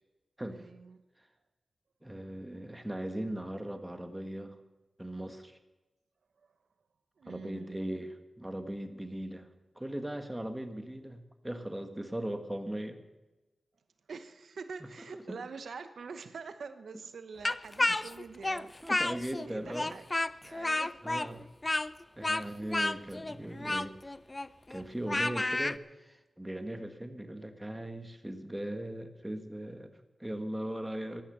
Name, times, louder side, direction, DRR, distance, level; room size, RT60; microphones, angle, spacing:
voice 1, 0.5-1.0 7.2-7.8 14.1-18.7 19.2-20.0 20.5-21.0 22.3-22.5, right 5 dB, 80° right, 10 dB, 0.9 m, -45 dB
voice 2, 2.0-4.6 5.0-5.6 7.3-9.5 9.7-13.0 14.8-14.9 15.1-15.4 17.8-18.0 18.8-19.9 20.4-20.6 21.0-21.5 22.2-24.0 24.7-31.2, right 1 dB, 10° right, 7 dB, 1.6 m, -39 dB
Speech, 17.4-19.5 19.7-25.8, left 2 dB, 25° left, 0.5 m, -31 dB
15.0 x 12.0 x 6.8 m, 1.1 s
wide cardioid pair, 70°, 0 cm